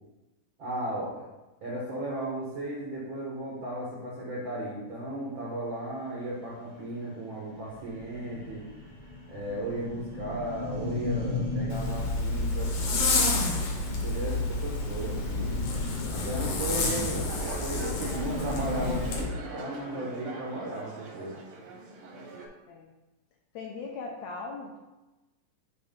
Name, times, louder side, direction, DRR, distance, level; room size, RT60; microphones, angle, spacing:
voice 1, 0.6-1.3 1.6-8.7 9.3-13.5 14.0-15.6 16.1-21.4, right 1 dB, 90° right, -6 dB, 1.0 m, -35 dB
sound 1, 6.3-6.4 6.8-6.9 7.2-7.3 7.5-19.1, left 2 dB, 40° left, 0.9 m, -37 dB
Zipper (clothing), 11.7-19.2, left 3 dB, 65° left, 1.8 m, -29 dB
sound 2, 17.3-22.5, right 4 dB, 70° right, 1.5 m, -42 dB
voice 2, 23.5-24.8, left 4 dB, 80° left, 0 dB, 1.6 m, -39 dB
7.7 x 2.6 x 5.1 m, 1.1 s
omnidirectional pair, 3.8 m